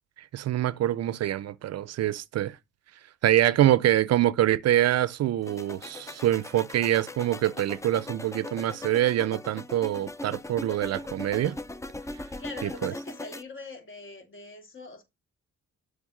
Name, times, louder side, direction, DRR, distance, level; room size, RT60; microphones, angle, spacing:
voice 1, 0.3-2.6 3.2-11.6 12.6-12.9, right 13 dB, 60° right, 0.5 m, -25 dB
sound 1, 5.4-13.4, left 2 dB, 10° left, 0.5 m, -40 dB
voice 2, 12.4-15.0, left 3 dB, 40° left, 2.3 m, -42 dB
7.1 x 3.5 x 6.2 m
cardioid pair, 90°, 30 cm